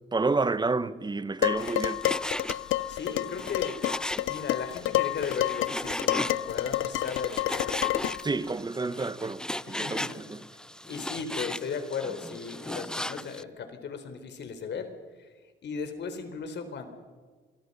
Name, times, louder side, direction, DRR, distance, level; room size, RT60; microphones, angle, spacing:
voice 1, 0.1-2.0 8.2-9.4 9.7-10.4, right 3 dB, 20° right, 1.2 m, -29 dB
Dishes pots and pans, 1.4-8.3, left 15 dB, 85° left, 0.8 m, -29 dB
Frying (food), 1.6-13.4, left 1 dB, 5° left, 0.5 m, -37 dB
voice 2, 2.9-3.8 4.3-7.9 9.7-10.2 10.9-14.9 15.2-15.3 15.6-16.9, left 5 dB, 60° left, 4.0 m, -36 dB
26.5 x 23.0 x 5.5 m
cardioid pair, 90°, 20 cm